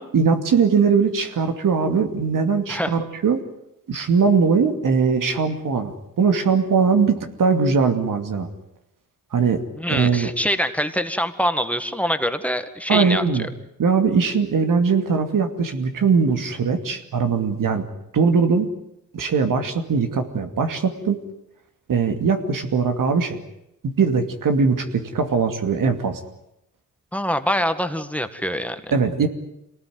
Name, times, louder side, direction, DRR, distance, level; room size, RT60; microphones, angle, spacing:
voice 1, 0.0-3.4 3.9-8.5 9.3-9.6 9.9-10.3 12.9-13.5 13.8-17.9 18.1-18.7 19.1-21.2 21.9-23.4 23.8-26.2 28.9-29.3, right 5 dB, 80° right, 6 dB, 2.6 m, -20 dB
voice 2, 9.8-13.2 27.1-28.8, equal, 5° left, 9 dB, 1.7 m, -24 dB
26.0 x 19.0 x 9.5 m, 0.83 s
cardioid pair, 90°, 32 cm